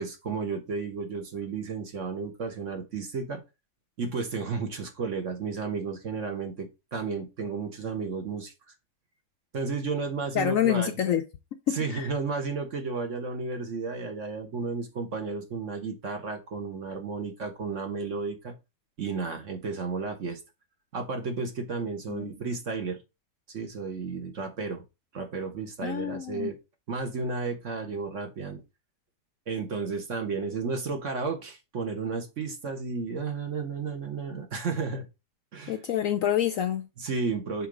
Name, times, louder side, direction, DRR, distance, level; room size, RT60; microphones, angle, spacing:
voice 1, 0.0-3.4 4.0-8.5 9.5-10.9 11.7-18.5 19.0-20.4 20.9-23.0 23.5-24.8 25.1-26.6 26.9-28.6 29.5-35.1 35.5-35.7 37.0-37.7, right 4 dB, 50° right, 1.4 m, -33 dB
voice 2, 10.3-11.2 11.7-12.1 22.1-22.3 25.8-26.5 35.7-36.9, left 10 dB, 65° left, 0.8 m, -27 dB
5.7 x 3.8 x 5.0 m
omnidirectional pair, 1.8 m